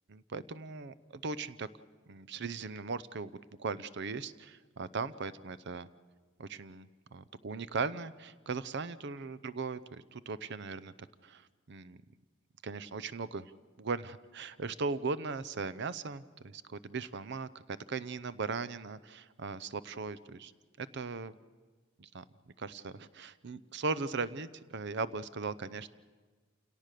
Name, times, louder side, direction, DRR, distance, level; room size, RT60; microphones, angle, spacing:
voice 1, 0.1-1.7 2.1-3.3 3.6-5.9 6.4-10.9 11.2-12.0 12.6-13.4 13.8-17.6 17.9-20.5 20.8-21.3 22.0-22.2 22.6-25.9, right 4 dB, 60° right, 16 dB, 0.7 m, -38 dB
28.5 x 18.0 x 6.6 m, 1.4 s
head